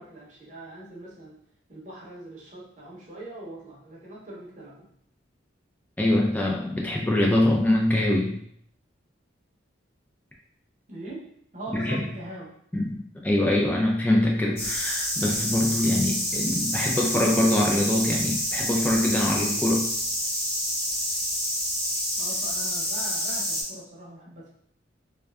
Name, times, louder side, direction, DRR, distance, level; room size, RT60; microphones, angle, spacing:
voice 1, 0.0-1.3 1.7-4.9 10.9-12.5 22.2-24.5, right 1 dB, 40° right, -5 dB, 0.7 m, -41 dB
voice 2, 6.0-8.4 11.7-12.0 12.7-19.9, left 1 dB, 10° left, -2 dB, 0.3 m, -24 dB
sound 1, 14.6-23.6, equal, 30° left, 0.9 m, -28 dB
2.5 x 2.3 x 2.2 m, 0.66 s
head